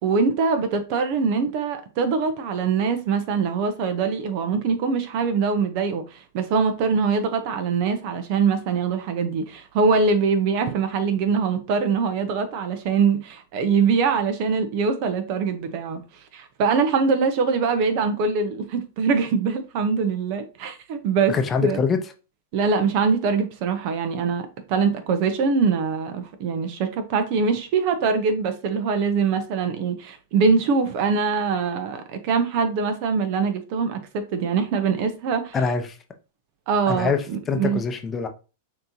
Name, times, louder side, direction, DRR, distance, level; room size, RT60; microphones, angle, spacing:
voice 1, 0.0-16.0 16.3-21.3 21.6-21.8 22.5-34.0 34.3-35.6 36.7-37.8, right 5 dB, 55° right, 0.9 m, -23 dB
voice 2, 21.3-22.0 35.5-35.8 36.9-37.2 37.5-38.3, left 5 dB, 25° left, 0.7 m, -23 dB
6.3 x 3.0 x 2.8 m
hypercardioid pair, 115°, 0 cm